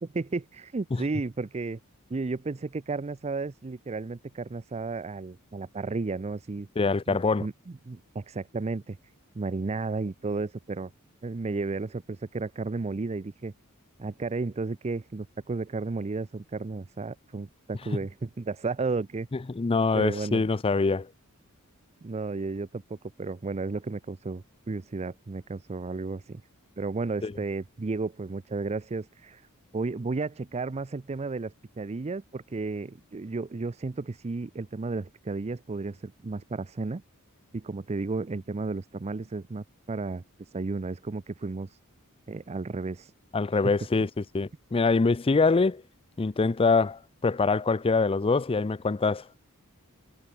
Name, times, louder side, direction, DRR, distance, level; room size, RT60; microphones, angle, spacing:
voice 1, 0.0-1.8 2.1-6.7 7.1-7.5 7.9-9.0 9.3-10.9 11.2-13.5 14.0-19.3 19.9-20.4 22.0-26.4 26.8-29.5 29.7-37.0 37.5-41.8 42.3-43.1 43.6-43.7, right 3 dB, 30° right, 0.5 m, -33 dB
voice 2, 6.8-7.5 19.5-21.1 27.2-27.3 43.3-44.1 44.3-45.8 46.2-49.4, left 4 dB, 25° left, 0.4 m, -24 dB
head